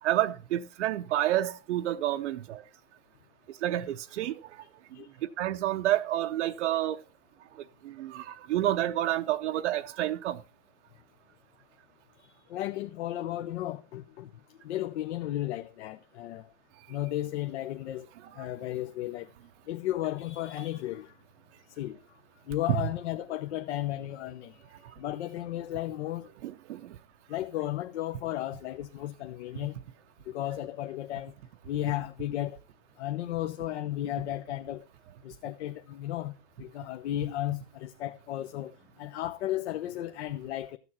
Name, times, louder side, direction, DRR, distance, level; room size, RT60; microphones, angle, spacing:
voice 1, 0.0-2.6 3.6-4.4 5.2-7.0 7.8-10.4 22.7-22.8 26.4-27.0, right 13 dB, 90° right, 0.7 m, -29 dB
voice 2, 12.2-14.3 14.6-16.5 16.9-18.1 18.4-19.3 19.7-21.1 21.8-22.0 22.5-24.6 25.0-26.3 27.3-29.8 30.3-31.3 31.7-32.6 33.0-34.8 35.2-36.3 36.6-40.8, left 14 dB, 75° left, 0.8 m, -34 dB
13.5 x 7.0 x 4.2 m
supercardioid pair, 150°, 34 cm